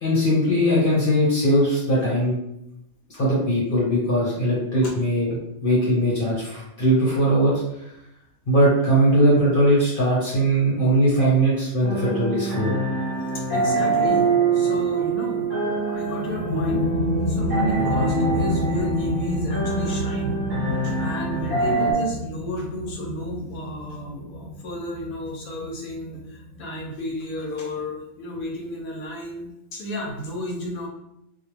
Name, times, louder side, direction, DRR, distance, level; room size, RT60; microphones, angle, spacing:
voice 1, 0.0-2.3 3.1-5.4 5.6-7.5 8.5-12.7, right 1 dB, 45° left, -8 dB, 1.0 m, -20 dB
sound 1, 11.8-21.9, right 3 dB, 25° right, 0.6 m, -24 dB
voice 2, 13.3-14.3 14.5-16.9 17.3-20.4 20.8-30.9, left 1 dB, 80° left, 0 dB, 1.0 m, -33 dB
sound 2, 15.9-27.3, left 1 dB, 65° right, 0.9 m, -30 dB
2.4 x 2.2 x 3.1 m, 0.83 s
omnidirectional pair, 1.5 m